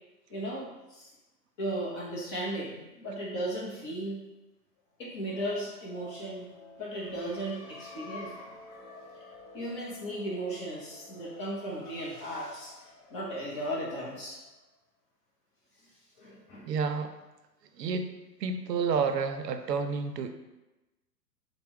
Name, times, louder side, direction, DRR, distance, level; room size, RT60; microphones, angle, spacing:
voice 1, 0.3-1.1 1.6-4.2 5.0-6.5 6.8-8.5 9.5-12.9 13.1-14.4 16.2-16.7, right 1 dB, 20° left, -4 dB, 0.5 m, -36 dB
sound 1, 5.1-14.7, left 3 dB, 55° left, 1.0 m, -50 dB
voice 2, 16.7-17.1 17.7-18.1 18.4-20.3, right 5 dB, 80° right, 8 dB, 0.6 m, -30 dB
4.3 x 2.1 x 3.4 m, 1.0 s
hypercardioid pair, 125°, 48 cm